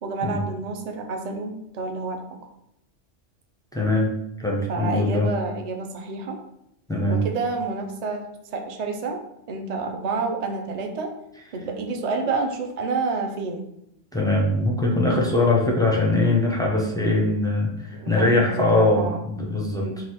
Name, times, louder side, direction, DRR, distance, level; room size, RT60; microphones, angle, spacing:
voice 1, 0.0-2.3 4.7-6.4 7.1-8.3 8.5-9.2 9.5-11.1 11.5-13.7 17.9-19.2 19.7-20.0, right 4 dB, 50° right, 3 dB, 0.5 m, -29 dB
voice 2, 3.7-4.1 4.4-5.3 6.9-7.2 14.1-19.9, left 2 dB, 5° left, -2 dB, 0.3 m, -21 dB
4.0 x 2.4 x 4.3 m, 0.78 s
omnidirectional pair, 1.3 m